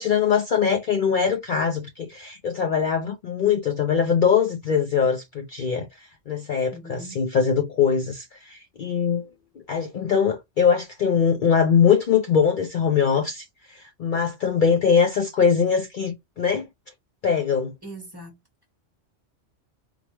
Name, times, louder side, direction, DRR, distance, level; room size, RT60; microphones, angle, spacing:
voice 1, 0.0-5.9 6.3-9.3 9.7-16.7 17.2-17.7, left 6 dB, 55° left, 0.6 m, -22 dB
voice 2, 6.7-7.2 17.8-18.4, right 1 dB, 20° right, 1.2 m, -40 dB
4.0 x 2.2 x 2.9 m
omnidirectional pair, 1.2 m